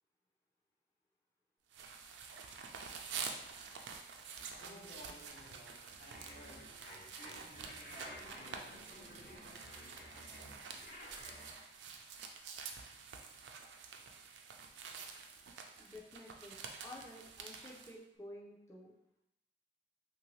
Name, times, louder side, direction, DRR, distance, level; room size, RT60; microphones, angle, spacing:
sound 1, 1.7-17.9, right 5 dB, 85° right, 0.4 m, -48 dB
voice 1, 4.6-10.7, equal, 75° left, -3 dB, 0.8 m, -58 dB
sound 2, 6.1-11.6, left 1 dB, 50° left, 0.8 m, -53 dB
voice 2, 15.8-18.9, left 1 dB, 15° left, -3 dB, 0.3 m, -52 dB
3.0 x 2.6 x 3.0 m, 0.80 s
head